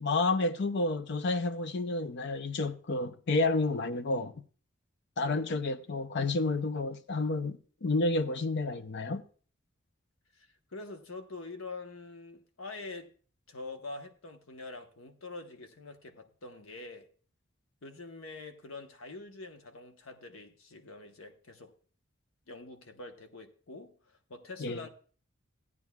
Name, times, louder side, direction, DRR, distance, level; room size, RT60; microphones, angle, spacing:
voice 1, 0.0-4.3 5.2-9.2 24.6-24.8, left 2 dB, 55° left, 0.6 m, -30 dB
voice 2, 5.2-5.5 10.3-13.1 13.5-17.1 17.8-21.7 22.5-24.9, left 3 dB, 85° left, 1.0 m, -45 dB
16.0 x 9.5 x 2.3 m
head